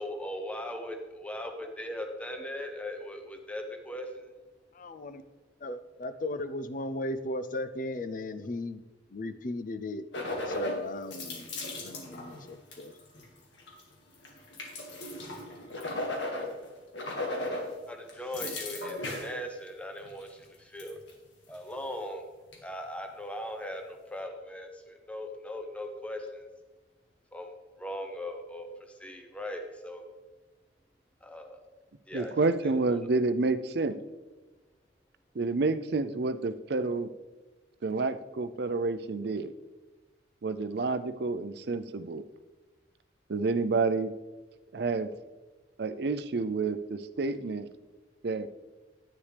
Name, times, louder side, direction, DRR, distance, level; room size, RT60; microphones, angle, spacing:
voice 1, 0.0-4.3 17.9-21.0 21.5-22.2 22.6-26.5 27.3-27.5 27.8-30.0 31.2-31.5 32.1-32.3 32.6-32.7, left 1 dB, 5° left, 4 dB, 0.8 m, -39 dB
voice 2, 4.7-5.2 5.6-8.8 9.1-10.0 10.5-11.5 11.8-12.9, left 1 dB, 45° left, 11 dB, 0.5 m, -36 dB
sound 1, 10.1-10.8 11.1-13.3 13.6-13.8 14.1-16.7 16.9-17.7 18.1-19.3 20.0-20.2 20.8-21.1 21.5-21.6 22.5-22.6, left 2 dB, 75° left, 1.9 m, -36 dB
voice 3, 32.1-34.0 35.3-37.1 37.8-39.5 40.4-42.2 43.3-44.1 44.7-45.1 45.8-47.7 48.2-48.5, right 3 dB, 60° right, 11 dB, 0.5 m, -29 dB
10.0 x 9.5 x 3.4 m, 1.2 s
head